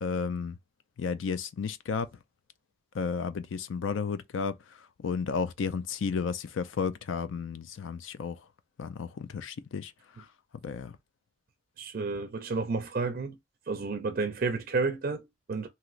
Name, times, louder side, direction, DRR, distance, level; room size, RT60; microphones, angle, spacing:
voice 1, 0.0-0.6 1.0-2.1 2.9-4.6 5.0-8.4 8.8-9.9 10.6-10.9, left 5 dB, 85° left, 0.4 m, -32 dB
voice 2, 11.8-13.4 13.7-15.7, right 4 dB, 50° right, 0.4 m, -31 dB
3.1 x 2.8 x 2.4 m
head